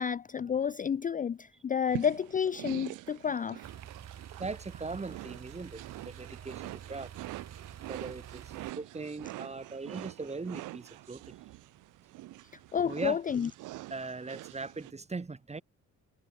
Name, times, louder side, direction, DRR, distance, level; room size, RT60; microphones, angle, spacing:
voice 1, 0.0-3.7 12.7-13.5, left 7 dB, 30° left, 0.5 m, -30 dB
sound 1, 1.9-14.9, right 18 dB, 90° right, 0.9 m, -45 dB
sound 2, 3.6-8.7, right 9 dB, 60° right, 6.6 m, -48 dB
voice 2, 4.4-7.1 7.9-11.3 12.8-13.2 13.9-15.6, right 3 dB, 20° right, 1.7 m, -40 dB
cardioid pair, 90°, 30 cm